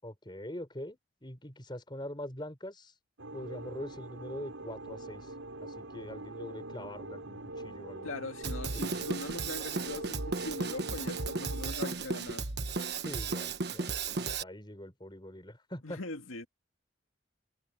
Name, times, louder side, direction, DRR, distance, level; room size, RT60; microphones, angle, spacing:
voice 1, 0.0-2.9 3.3-5.3 5.6-8.1 13.0-16.0, left 1 dB, 25° left, 5.5 m, -43 dB
sound 1, 3.2-11.7, right 2 dB, 85° right, 5.8 m, -43 dB
voice 2, 8.0-12.5 15.8-16.5, left 2 dB, 85° left, 2.2 m, -41 dB
Drum kit, 8.4-14.4, right 4 dB, 55° right, 1.3 m, -35 dB
head